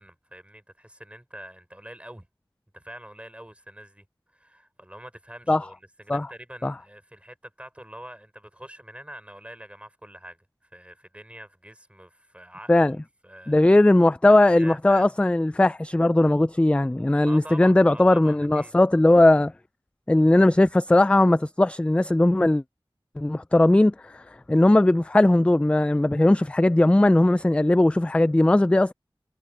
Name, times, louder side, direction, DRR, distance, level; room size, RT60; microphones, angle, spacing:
voice 1, 0.0-2.3 2.7-12.9 13.2-13.6 14.3-15.1 17.2-18.7, right 1 dB, 15° right, 5.0 m, -45 dB
voice 2, 13.5-19.5 20.1-22.6 23.2-24.2 24.5-28.9, left 1 dB, 15° left, 0.3 m, -19 dB
wide cardioid pair, 60°, 9 cm